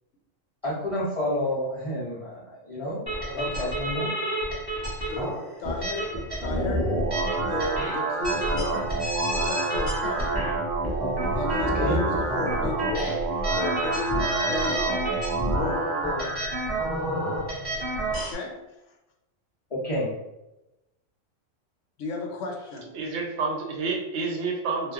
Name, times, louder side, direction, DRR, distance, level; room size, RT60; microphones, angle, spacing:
voice 1, 0.6-4.1 11.8-12.0 19.7-20.1, left 1 dB, 40° left, -8 dB, 0.5 m, -30 dB
sound 1, 3.1-18.3, equal, 20° right, 0.9 m, -30 dB
voice 2, 3.3-3.7 5.0-6.9 7.4-9.0 9.3-10.4 11.4-13.2 13.5-14.9 15.5-16.4 18.1-18.6 22.0-22.9, left 3 dB, 75° left, 2 dB, 0.9 m, -34 dB
sound 2, 6.6-16.6, right 3 dB, 85° right, 1.0 m, -29 dB
voice 3, 22.9-24.9, right 4 dB, 65° right, 0 dB, 0.8 m, -29 dB
2.2 x 2.1 x 3.5 m, 0.96 s
omnidirectional pair, 1.4 m